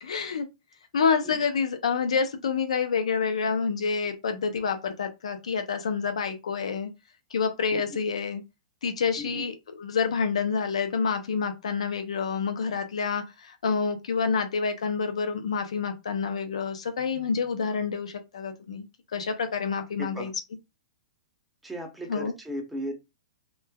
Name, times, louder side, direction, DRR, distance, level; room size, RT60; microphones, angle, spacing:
voice 1, 0.0-0.5 0.9-6.9 7.3-8.4 8.8-18.8 19.1-20.3 22.1-22.3, left 5 dB, 90° left, 0.5 m, -28 dB
voice 2, 20.0-20.3 21.6-22.9, equal, 5° right, 0.7 m, -36 dB
3.1 x 2.1 x 2.2 m
hypercardioid pair, 145°, 3 cm